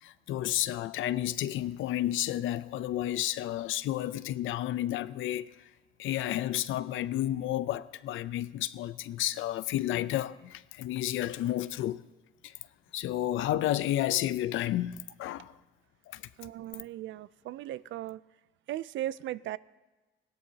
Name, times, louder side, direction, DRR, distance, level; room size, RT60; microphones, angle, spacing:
voice 1, 0.0-5.5 6.0-12.0 12.4-12.5 12.9-15.5 16.1-16.2, left 13 dB, 80° left, 0.5 m, -31 dB
voice 2, 16.4-18.2 18.7-19.6, right 14 dB, 75° right, 0.4 m, -37 dB
19.5 x 17.5 x 2.8 m
cardioid pair, 90°, 20 cm